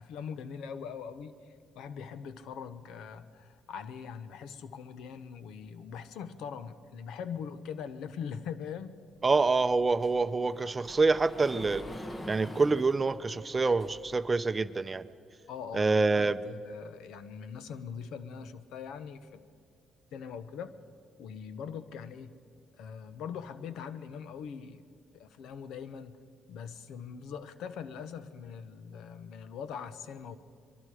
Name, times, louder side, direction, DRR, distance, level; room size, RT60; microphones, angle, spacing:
voice 1, 0.0-1.4 1.7-9.0 15.5-19.4 20.1-20.7 21.2-22.4 22.8-24.8 25.1-26.2 26.5-30.4, left 7 dB, 85° left, 13 dB, 1.0 m, -42 dB
voice 2, 9.2-11.8 12.3-15.0 15.7-16.4, right 3 dB, 30° right, 12 dB, 0.6 m, -26 dB
Sliding door, 9.3-14.3, left 1 dB, 25° left, 1.4 m, -46 dB
24.0 x 22.5 x 4.9 m, 2.2 s
cardioid pair, 90°, 0 cm